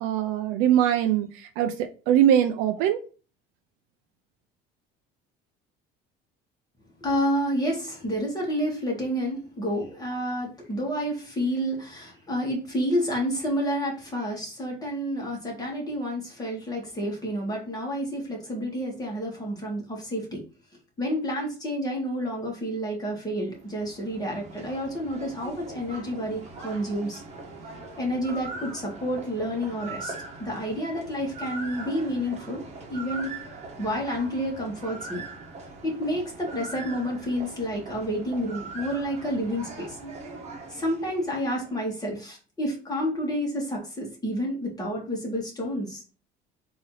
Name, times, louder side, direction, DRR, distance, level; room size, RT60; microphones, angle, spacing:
voice 1, 0.0-3.0, right 10 dB, 85° right, 7 dB, 0.5 m, -22 dB
voice 2, 7.0-20.4 21.0-27.2 28.0-30.1 30.4-32.6 32.9-33.3 33.8-35.2 35.8-40.1 40.7-46.1, equal, 20° left, -1 dB, 1.9 m, -29 dB
sound 1, 23.4-41.8, right 3 dB, 35° right, 1.3 m, -41 dB
4.0 x 2.9 x 3.9 m, 0.35 s
cardioid pair, 115°, 20 cm